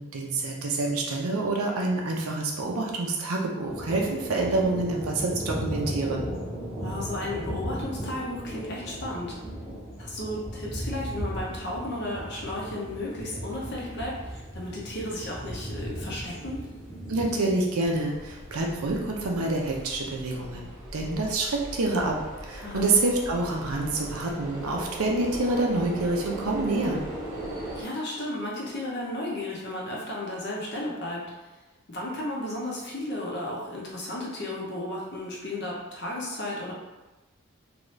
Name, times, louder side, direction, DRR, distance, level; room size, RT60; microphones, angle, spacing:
voice 1, 0.0-6.3 17.1-27.0, right 2 dB, 85° right, 0 dB, 0.6 m, -27 dB
sound 1, 3.7-19.8, equal, ahead, 1.0 m, -37 dB
voice 2, 6.8-9.3 10.0-16.7 22.6-22.9 27.8-31.2 31.9-36.7, left 1 dB, 50° left, -3 dB, 0.7 m, -34 dB
sound 2, 17.8-27.8, right 1 dB, 15° right, 0.6 m, -39 dB
2.7 x 2.6 x 3.1 m, 1.1 s
head